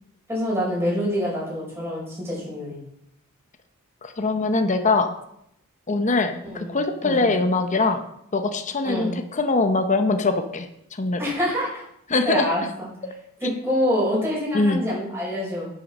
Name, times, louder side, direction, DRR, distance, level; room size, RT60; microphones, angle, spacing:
voice 1, 0.3-2.8 6.4-7.3 8.8-9.1 11.2-11.8 12.2-12.9 13.4-15.7, equal, 10° right, -5 dB, 5.4 m, -26 dB
voice 2, 4.0-5.1 5.9-8.0 8.3-10.7 11.0-11.2 12.1-12.4 14.5-14.8, left 3 dB, 35° left, 7 dB, 0.9 m, -22 dB
9.5 x 8.0 x 6.2 m, 0.76 s
head